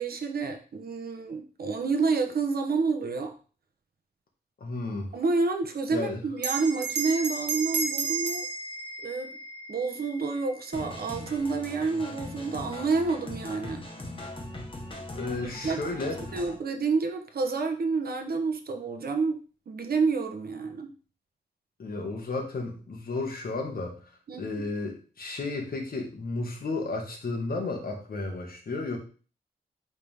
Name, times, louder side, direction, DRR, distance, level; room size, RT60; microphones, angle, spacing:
voice 1, 0.0-3.3 5.1-8.5 9.0-9.4 9.7-13.8 15.6-15.8 16.3-19.4 19.7-20.9 24.3-24.5, right 4 dB, 60° right, 5 dB, 1.0 m, -29 dB
voice 2, 4.6-5.1 5.9-6.2 15.1-16.4 21.8-23.9 24.4-29.0, left 3 dB, 60° left, 1 dB, 1.7 m, -33 dB
Bell, 6.4-11.2, right 4 dB, 85° right, 1.1 m, -33 dB
sound 1, 10.7-16.6, left 1 dB, 30° left, 1.2 m, -40 dB
8.2 x 3.7 x 3.5 m, 0.38 s
wide cardioid pair, 130°, 18 cm